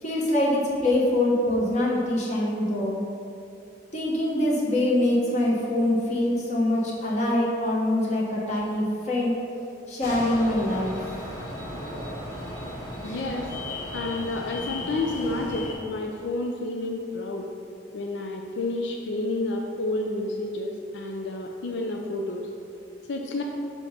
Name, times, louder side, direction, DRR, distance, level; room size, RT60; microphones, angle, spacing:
voice 1, 0.0-3.0 3.9-9.4 9.9-11.1, left 1 dB, 40° left, -5 dB, 1.2 m, -24 dB
sound 1, 10.0-15.7, left 1 dB, 20° left, 1.3 m, -36 dB
voice 2, 13.0-13.5 13.9-17.5 17.9-22.5 23.1-23.4, left 2 dB, 80° left, 1 dB, 0.5 m, -30 dB
7.0 x 2.9 x 5.5 m, 2.6 s
head